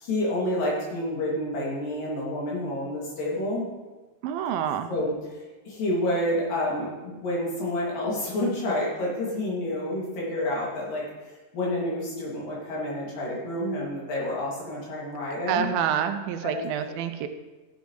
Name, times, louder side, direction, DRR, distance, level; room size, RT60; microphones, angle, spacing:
voice 1, 0.0-3.7 4.9-5.4 5.7-11.1 11.5-15.7 16.4-16.6, left 1 dB, 70° left, -4 dB, 4.0 m, -29 dB
voice 2, 4.2-4.9 15.5-17.3, right 9 dB, 85° right, 7 dB, 2.5 m, -27 dB
14.5 x 8.2 x 3.2 m, 1.2 s
omnidirectional pair, 4.2 m